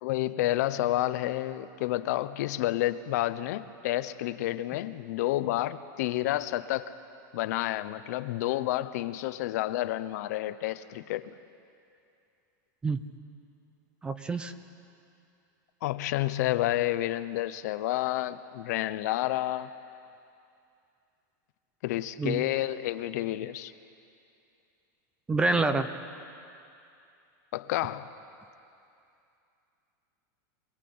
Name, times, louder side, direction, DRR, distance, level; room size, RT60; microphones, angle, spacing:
voice 1, 0.0-6.9 7.3-11.3 15.8-19.7 21.8-23.7 27.5-28.1, left 15 dB, 55° left, 12 dB, 0.9 m, -30 dB
voice 2, 14.0-14.5 22.2-22.4 25.3-25.9, right 3 dB, 10° right, 10 dB, 0.7 m, -27 dB
26.5 x 20.5 x 8.7 m, 2.6 s
supercardioid pair, 165°, 10 cm